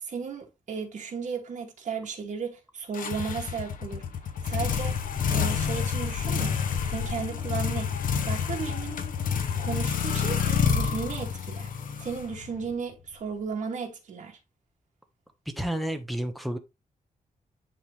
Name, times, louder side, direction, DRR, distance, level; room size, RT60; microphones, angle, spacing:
voice 1, 0.0-4.1 4.5-5.0 5.3-6.6 6.9-9.0 9.6-11.7 12.0-14.4, right 5 dB, 60° right, 2.3 m, -35 dB
sound 1, 2.9-12.7, left 6 dB, 90° left, 0.9 m, -28 dB
voice 2, 15.6-16.6, right 1 dB, ahead, 1.1 m, -30 dB
10.5 x 3.8 x 3.2 m
wide cardioid pair, 175°, 14 cm